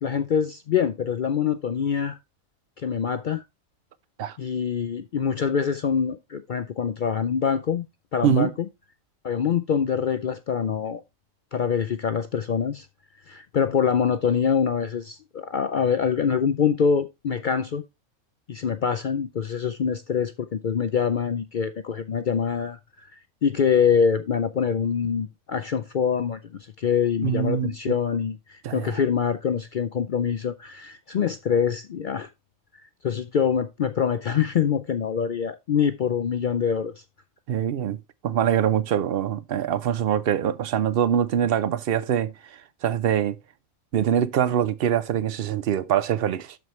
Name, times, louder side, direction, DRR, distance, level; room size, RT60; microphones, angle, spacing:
voice 1, 0.0-2.2 2.8-3.4 4.4-7.9 8.1-8.5 9.2-11.0 11.5-12.9 13.3-17.8 18.5-32.3 33.0-36.9, left 7 dB, 75° left, 0.4 m, -25 dB
voice 2, 27.2-27.7 28.6-28.9 37.5-38.0 38.2-42.3 42.8-43.4 43.9-46.6, right 9 dB, 60° right, 0.6 m, -23 dB
12.5 x 4.6 x 3.1 m
omnidirectional pair, 1.5 m